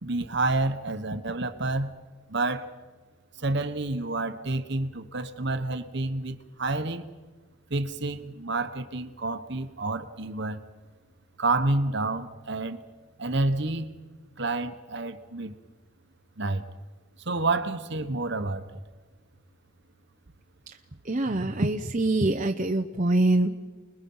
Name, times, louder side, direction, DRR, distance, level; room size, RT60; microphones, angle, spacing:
voice 1, 0.0-1.9 2.3-2.7 3.4-7.1 7.7-10.6 11.4-12.8 13.2-13.9 14.4-15.5 16.4-16.6 17.2-18.8, right 2 dB, 55° right, 9 dB, 1.2 m, -29 dB
voice 2, 21.1-23.5, right 2 dB, 35° right, 4 dB, 0.8 m, -24 dB
29.5 x 21.0 x 5.6 m, 1.4 s
head